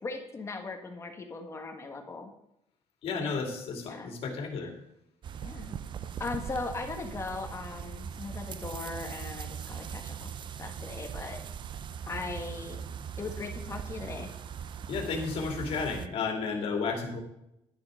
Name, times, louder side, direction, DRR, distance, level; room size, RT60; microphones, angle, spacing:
voice 1, 0.0-2.3 3.2-3.4 3.8-4.1 5.4-5.8 6.2-10.3 10.6-11.4 12.1-12.8 13.2-14.3, left 3 dB, 25° left, 4 dB, 1.6 m, -38 dB
voice 2, 3.0-4.7 14.9-17.2, left 4 dB, 60° left, 2 dB, 2.6 m, -32 dB
sound 1, 5.2-16.1, right 8 dB, 45° right, 0.5 m, -40 dB
11.5 x 10.0 x 3.8 m, 0.83 s
cardioid pair, 145°, 11 cm